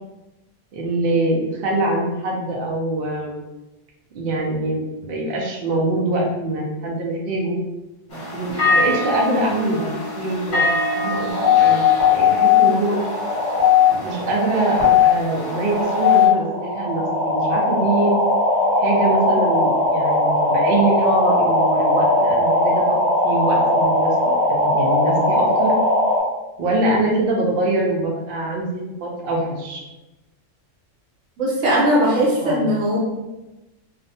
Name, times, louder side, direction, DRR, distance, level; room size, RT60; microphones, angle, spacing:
voice 1, 0.7-3.3 4.1-7.6 8.1-9.9 10.2-10.6 11.0-13.0 13.9-18.1 18.8-23.0 23.2-25.8 26.6-29.8 32.4-32.6, right 2 dB, 60° right, -2 dB, 0.6 m, -24 dB
sound 1, 8.1-16.3, left 1 dB, 45° left, 0.8 m, -26 dB
sound 2, 11.3-26.2, left 4 dB, 15° left, 1.0 m, -18 dB
voice 2, 31.4-33.0, equal, 75° right, -4 dB, 1.1 m, -19 dB
2.5 x 2.1 x 2.6 m, 1.0 s
omnidirectional pair, 1.3 m